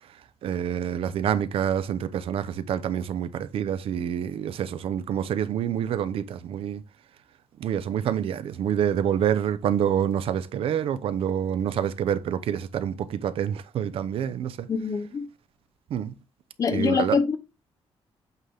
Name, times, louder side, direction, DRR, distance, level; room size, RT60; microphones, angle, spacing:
voice 1, 0.4-6.8 7.6-14.7 15.9-16.2 16.7-17.2, right 9 dB, 70° right, 0.6 m, -27 dB
voice 2, 14.7-15.3 16.6-17.4, left 5 dB, 35° left, 0.7 m, -24 dB
8.2 x 3.8 x 3.4 m
wide cardioid pair, 170°, 10 cm